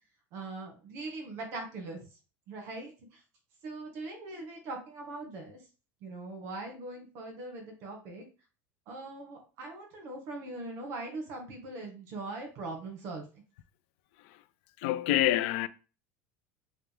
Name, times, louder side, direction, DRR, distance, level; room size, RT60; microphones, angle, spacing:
voice 1, 0.3-2.0 2.5-2.9 3.6-5.6 6.0-8.3 8.9-13.2, right 2 dB, 45° right, 1.7 m, -41 dB
voice 2, 14.8-15.7, left 15 dB, 65° left, 0.5 m, -27 dB
5.8 x 2.4 x 3.5 m
cardioid pair, 170°, 7 cm